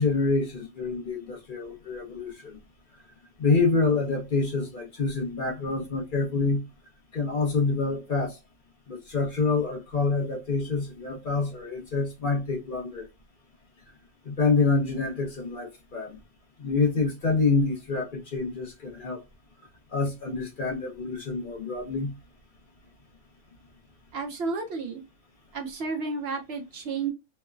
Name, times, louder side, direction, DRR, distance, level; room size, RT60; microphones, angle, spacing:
voice 1, 0.0-2.6 3.4-6.6 7.1-8.4 8.9-13.1 14.3-16.2 16.6-19.2 19.9-22.1, left 4 dB, 50° left, 0.8 m, -27 dB
voice 2, 24.1-25.0 25.5-27.1, right 4 dB, 65° right, 0.8 m, -31 dB
3.0 x 2.1 x 2.3 m
omnidirectional pair, 1.3 m